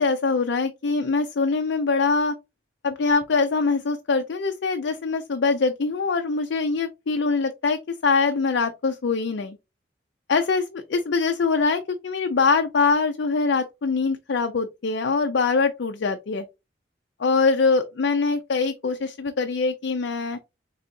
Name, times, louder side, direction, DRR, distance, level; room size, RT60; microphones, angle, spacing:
voice 1, 0.0-2.3 2.8-9.6 10.3-16.4 17.2-20.4, left 4 dB, 75° left, 0.5 m, -23 dB
4.0 x 3.4 x 2.6 m
head